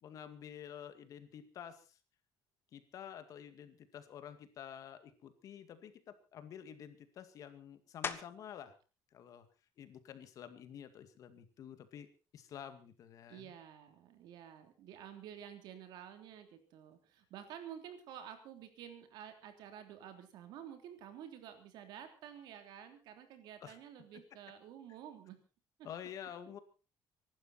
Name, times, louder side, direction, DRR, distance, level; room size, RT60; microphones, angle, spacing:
voice 1, 0.0-2.0 2.7-8.8 9.1-9.5 9.8-12.1 12.3-13.5 23.6-23.8 25.8-26.6, left 9 dB, 50° left, 10 dB, 2.1 m, -50 dB
sound 1, 8.0-8.6 9.2-13.6 14.1-19.3 19.6-25.2, left 6 dB, 30° left, 1.3 m, -52 dB
voice 2, 13.3-25.4, right 9 dB, 75° right, 7 dB, 3.4 m, -51 dB
24.5 x 12.0 x 4.4 m, 0.33 s
cardioid pair, 160°, 7 cm